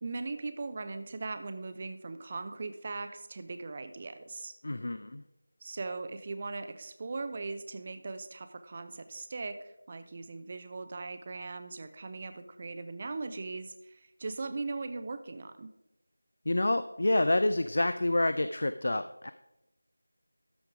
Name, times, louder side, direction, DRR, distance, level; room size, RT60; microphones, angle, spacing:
voice 1, 0.0-4.5 5.6-15.7, right 3 dB, 25° right, 10 dB, 0.4 m, -39 dB
voice 2, 4.6-5.2 16.5-19.3, left 1 dB, 45° left, 11 dB, 0.3 m, -28 dB
13.0 x 5.2 x 4.8 m, 0.89 s
figure-of-eight pair, 170°, 0 cm